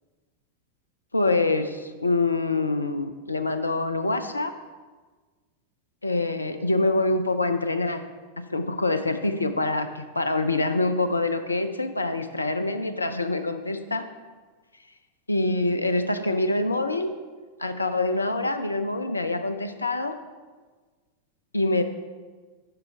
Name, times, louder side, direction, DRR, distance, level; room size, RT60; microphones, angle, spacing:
voice 1, 1.1-4.5 6.0-8.0 8.5-14.0 15.3-17.1 17.6-20.1 21.5-21.8, left 2 dB, 80° left, 9 dB, 0.4 m, -25 dB
6.8 x 5.5 x 4.6 m, 1.4 s
figure-of-eight pair, 90°, 0 cm